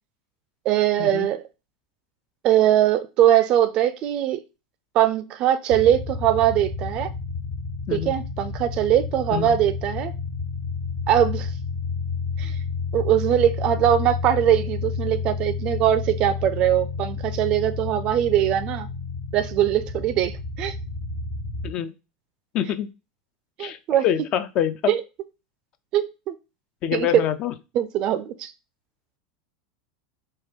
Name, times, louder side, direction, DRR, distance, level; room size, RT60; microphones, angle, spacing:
voice 1, 0.7-1.4 2.4-4.4 4.9-7.1 7.9-10.1 11.1-11.5 12.4-12.5 12.9-18.9 19.3-20.8 23.6-24.0 24.9-25.0 25.9-26.3 26.9-27.2 27.7-28.5, right 11 dB, 40° right, 13 dB, 0.4 m, -21 dB
sound 1, 5.7-21.7, left 5 dB, 60° left, 0.7 m, -30 dB
voice 2, 22.5-22.9 23.6-23.8 24.0-24.9 26.8-27.5, left 10 dB, 40° left, 12 dB, 0.3 m, -25 dB
4.2 x 2.2 x 3.5 m, 0.29 s
figure-of-eight pair, 80°, 2 cm